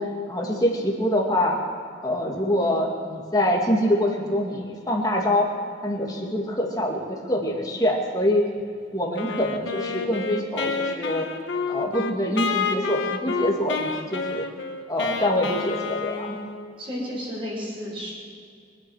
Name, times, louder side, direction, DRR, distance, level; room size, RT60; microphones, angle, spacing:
voice 1, 0.0-1.6 2.0-5.5 5.8-8.4 8.9-11.3 11.7-14.5 14.9-16.4, left 1 dB, 20° left, 0 dB, 2.2 m, -25 dB
Wind instrument woodwind instrument, 9.2-16.8, left 5 dB, 80° left, 1.2 m, -29 dB
voice 2, 16.8-18.1, equal, 30° right, -5 dB, 5.4 m, -32 dB
23.5 x 9.6 x 6.3 m, 2.2 s
head